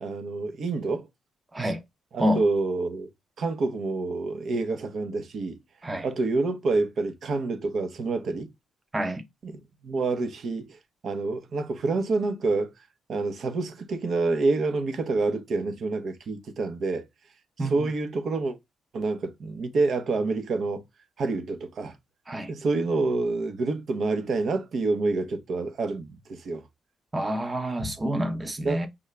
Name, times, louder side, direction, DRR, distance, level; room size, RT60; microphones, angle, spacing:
voice 1, 0.0-1.1 2.1-3.1 3.4-5.6 6.0-8.5 9.4-12.7 13.1-17.0 17.6-18.6 18.9-20.8 21.2-21.9 22.5-26.6 28.6-28.9, right 3 dB, 60° right, 0.9 m, -27 dB
voice 2, 27.1-28.9, equal, 20° right, 0.9 m, -28 dB
5.3 x 2.4 x 3.2 m
cardioid pair, 105°, 0 cm